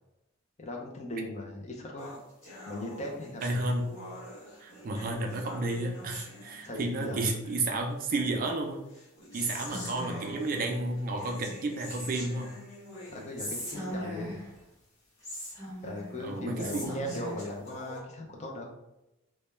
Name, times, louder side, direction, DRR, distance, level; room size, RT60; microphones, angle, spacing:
voice 1, 0.6-2.1 2.7-3.5 6.6-7.3 13.1-14.4 15.8-18.8, left 1 dB, 35° left, 0 dB, 0.5 m, -38 dB
sound 1, 2.0-7.1 8.0-8.1 8.9-14.1 14.6-14.7 15.2-15.3 16.0-16.1 16.8-18.0, left 1 dB, 60° left, 1.1 m, -46 dB
voice 2, 3.4-3.9 4.6-8.8 9.3-12.5 16.2-17.1, right 2 dB, 45° right, 3 dB, 0.3 m, -32 dB
Whispering, 9.3-10.4 11.8-12.5 13.4-14.6 15.2-16.2 16.6-17.4, equal, 15° left, 1.0 m, -39 dB
2.2 x 2.1 x 3.0 m, 0.91 s
head